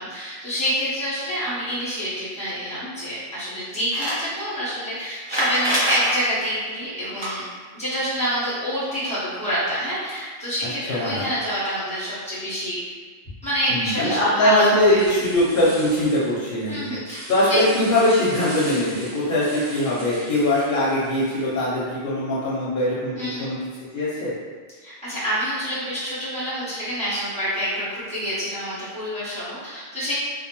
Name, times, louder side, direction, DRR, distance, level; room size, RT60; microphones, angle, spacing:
voice 1, 0.0-7.4 7.7-12.8 13.4-15.0 16.7-17.2 17.5-17.6 23.2-23.5 24.8-30.1, equal, 5° left, -13 dB, 0.9 m, -27 dB
sound 1, 3.9-4.2 5.2-6.1 7.0-7.3 9.8-9.9 10.1-10.2 11.3-11.4, equal, 30° right, 0.7 m, -24 dB
voice 2, 10.9-11.2 13.7-23.6 23.9-24.3, left 1 dB, 60° left, -7 dB, 0.7 m, -21 dB
sound 2, 15.0-21.6, right 1 dB, 70° right, 0.8 m, -39 dB
2.3 x 2.0 x 2.9 m, 1.5 s
omnidirectional pair, 1.0 m